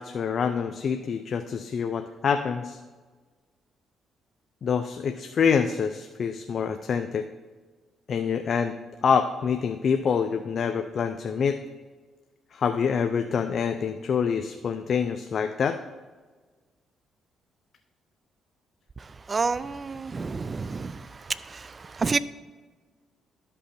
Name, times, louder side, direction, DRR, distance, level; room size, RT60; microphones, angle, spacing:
voice 1, 0.0-2.8 4.6-7.3 8.1-11.6 12.5-15.8, left 6 dB, 55° left, 8 dB, 0.5 m, -26 dB
voice 2, 19.3-21.1 21.5-22.2, right 4 dB, 35° right, 17 dB, 0.4 m, -29 dB
12.5 x 5.4 x 4.3 m, 1.4 s
cardioid pair, 90°, 0 cm